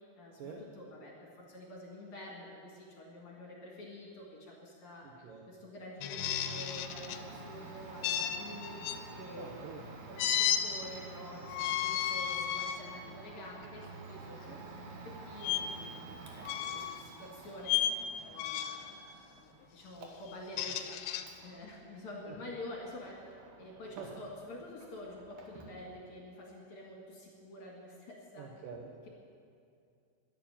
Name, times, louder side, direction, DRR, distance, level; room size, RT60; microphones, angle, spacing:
voice 1, 0.2-5.2 5.5-8.8 9.1-14.8 15.0-15.9 16.3-17.8 18.2-21.0 21.4-28.5, left 1 dB, 50° left, -2 dB, 2.5 m, -48 dB
voice 2, 5.0-5.4 9.4-9.9 14.5-14.6 22.3-22.5 24.0-24.2 28.4-29.1, right 5 dB, 80° right, 1 dB, 1.9 m, -47 dB
sound 1, 6.0-7.2 8.0-9.0 10.2-10.6 11.5-12.8 13.4-13.6 15.4-15.6 16.4-17.0 17.7-18.0 18.4-18.9 20.3-21.2, left 10 dB, 85° left, 2.9 m, -33 dB
Domestic sounds home sounds, 6.2-24.5 24.8-25.8, right 3 dB, 65° right, 1.9 m, -50 dB
11.5 x 11.0 x 8.9 m, 2.4 s
omnidirectional pair, 5.3 m